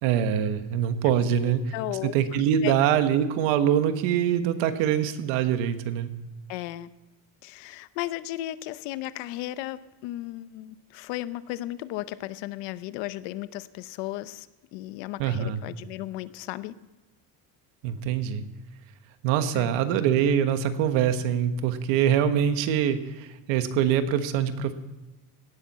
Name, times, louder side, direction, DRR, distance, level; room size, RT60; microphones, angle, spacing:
voice 1, 0.0-1.6 2.0-6.1 15.2-15.6 17.8-18.4 19.2-24.7, right 9 dB, 80° right, 9 dB, 1.4 m, -24 dB
voice 2, 1.4-2.7 6.5-6.9 7.4-14.5 14.7-16.7 19.5-19.7, left 15 dB, 80° left, 15 dB, 0.8 m, -35 dB
17.5 x 12.0 x 4.2 m, 1.1 s
cardioid pair, 175°, 44 cm